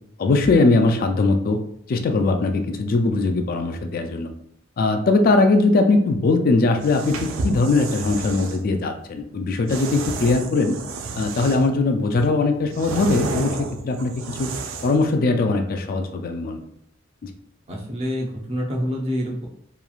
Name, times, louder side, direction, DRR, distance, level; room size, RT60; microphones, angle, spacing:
voice 1, 0.2-1.6 1.9-4.3 4.8-10.8 11.2-14.5 14.8-16.6 17.2-17.3, left 3 dB, 45° left, 6 dB, 0.3 m, -20 dB
sound 1, 6.7-8.6 9.7-11.8 12.2-15.1, right 3 dB, 75° right, 0.3 m, -31 dB
voice 2, 17.7-19.5, equal, 30° right, -2 dB, 0.6 m, -27 dB
3.0 x 2.3 x 2.3 m, 0.69 s
head